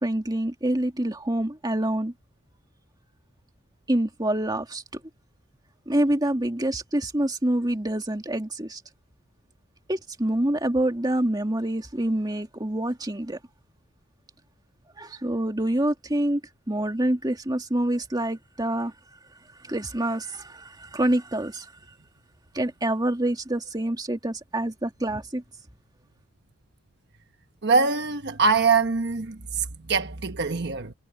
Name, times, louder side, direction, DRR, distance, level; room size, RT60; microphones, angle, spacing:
voice 1, 0.0-2.1 3.9-4.8 5.9-8.8 9.9-13.4 15.0-16.4 16.7-18.9 19.6-21.7 22.5-25.4, right 1 dB, 20° right, 2.4 m, -26 dB
voice 2, 27.6-30.9, right 4 dB, 55° right, 1.2 m, -23 dB
head